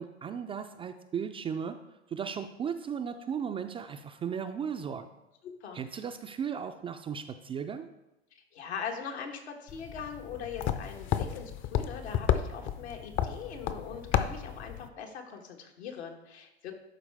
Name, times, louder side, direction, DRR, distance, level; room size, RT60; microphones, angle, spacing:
voice 1, 0.0-1.8 2.1-5.1 5.7-7.9, right 7 dB, 20° right, 7 dB, 0.3 m, -36 dB
voice 2, 5.4-5.8 8.3-16.7, left 6 dB, 75° left, 3 dB, 1.4 m, -41 dB
sound 1, 9.7-14.9, left 9 dB, 40° left, 0.6 m, -32 dB
11.5 x 4.6 x 3.4 m, 0.92 s
hypercardioid pair, 95°, 33 cm